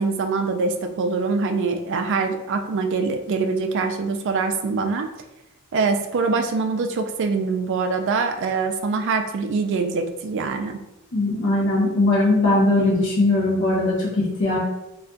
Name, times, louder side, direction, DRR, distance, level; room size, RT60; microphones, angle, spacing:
voice 1, 0.0-5.1 5.7-10.8, right 4 dB, 55° right, 5 dB, 0.3 m, -24 dB
voice 2, 11.1-14.6, left 2 dB, 55° left, -6 dB, 0.8 m, -20 dB
2.4 x 2.3 x 3.8 m, 0.91 s
head